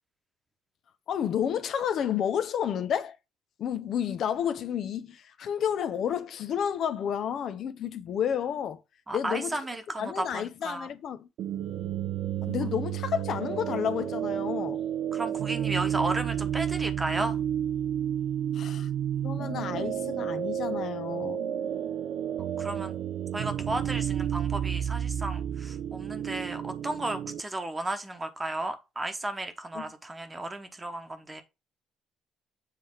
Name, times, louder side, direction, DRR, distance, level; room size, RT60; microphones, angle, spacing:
voice 1, 1.1-3.2 3.6-8.8 9.1-9.6 10.0-11.3 12.4-14.8 18.5-18.9 19.2-21.4 29.7-29.8, left 9 dB, 55° left, 0.7 m, -31 dB
voice 2, 9.1-10.9 15.1-17.4 22.6-23.0 23.3-31.4, right 2 dB, 15° right, 1.1 m, -34 dB
sound 1, 11.4-27.4, right 10 dB, 75° right, 0.7 m, -31 dB
7.6 x 3.4 x 4.6 m
cardioid pair, 140°, 0 cm